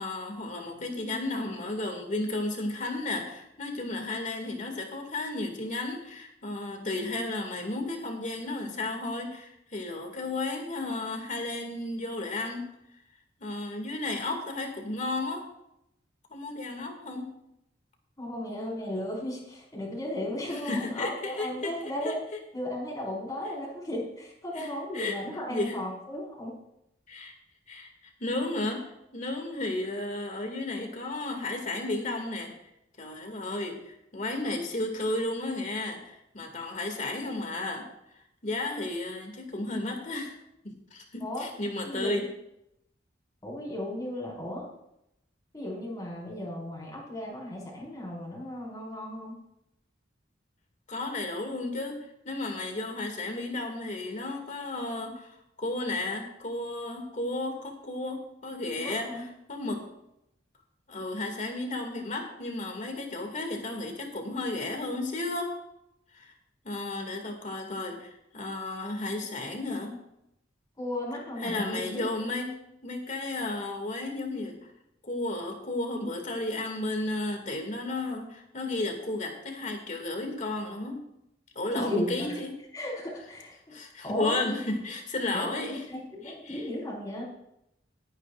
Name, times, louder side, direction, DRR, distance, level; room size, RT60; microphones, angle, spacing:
voice 1, 0.0-12.7 13.4-15.4 16.3-17.3 20.5-21.7 22.0-22.1 24.6-25.1 25.5-25.8 27.1-27.3 27.7-27.9 28.2-32.5 33.0-37.9 38.4-40.3 40.9-42.2 50.9-59.8 60.9-65.6 66.1-66.3 66.6-70.0 71.4-74.6 75.0-81.0 81.5-82.5 83.7-86.6, left 2 dB, 45° left, 3 dB, 2.4 m, -33 dB
voice 2, 18.2-22.2 22.5-26.5 41.2-41.5 41.8-42.3 43.4-44.7 45.5-49.4 58.8-59.3 70.8-72.1 81.7-82.4 82.7-83.8 84.0-84.4 85.3-87.2, left 1 dB, 20° left, -3 dB, 5.0 m, -35 dB
20.0 x 9.8 x 2.5 m, 0.81 s
head